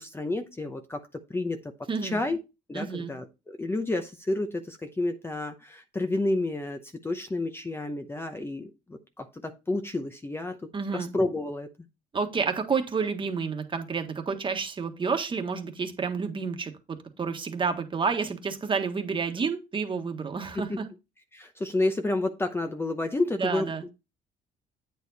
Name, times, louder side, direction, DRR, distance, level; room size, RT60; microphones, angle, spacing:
voice 1, 0.0-1.7 2.0-2.4 2.7-10.6 10.9-11.7 20.5-20.8 21.3-23.9, left 2 dB, 15° left, 5 dB, 0.8 m, -30 dB
voice 2, 1.9-2.2 2.7-3.1 10.7-11.1 12.1-20.9 23.4-23.8, right 5 dB, 30° right, 5 dB, 1.5 m, -30 dB
8.6 x 4.7 x 4.1 m, 0.27 s
cardioid pair, 110°, 17 cm